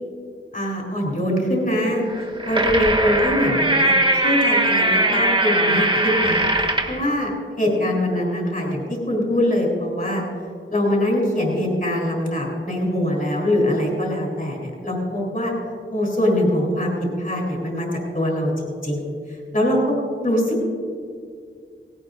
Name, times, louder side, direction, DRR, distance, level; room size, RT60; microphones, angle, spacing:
voice 1, 0.5-2.0 2.4-6.5 6.9-7.3 7.6-10.2 10.7-15.5 15.9-17.9 18.1-18.5 18.8-19.1 19.5-20.0 20.2-20.6, left 1 dB, 40° left, -2 dB, 3.5 m, -22 dB
sound 1, 2.1-7.0, right 1 dB, 25° right, 1.6 m, -20 dB
18.0 x 17.0 x 2.6 m, 2.2 s
wide cardioid pair, 55°, 21 cm